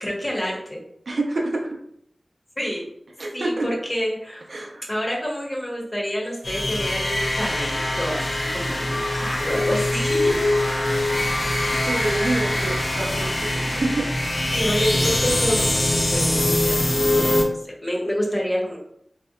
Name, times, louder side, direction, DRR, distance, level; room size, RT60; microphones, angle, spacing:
voice 1, 0.0-0.8 2.6-2.8 3.3-4.4 4.9-10.4 14.5-18.8, equal, 30° left, -3 dB, 0.8 m, -28 dB
voice 2, 1.1-1.8 3.2-3.7 4.5-4.9 11.7-14.5, right 2 dB, 85° right, 0 dB, 0.4 m, -27 dB
sound 1, 6.4-17.4, left 1 dB, 65° left, 0.5 m, -23 dB
2.7 x 2.1 x 2.3 m, 0.72 s
wide cardioid pair, 55°, 0 cm